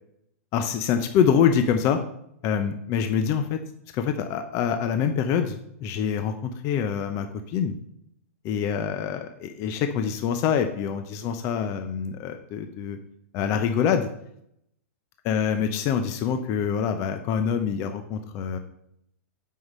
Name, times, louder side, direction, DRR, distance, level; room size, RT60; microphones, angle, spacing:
voice 1, 0.5-2.0 2.4-3.6 3.9-7.7 8.4-13.0 13.3-14.1 15.2-18.6, left 7 dB, 40° left, 8 dB, 0.8 m, -25 dB
7.9 x 5.7 x 5.5 m, 0.74 s
hypercardioid pair, 125°, 8 cm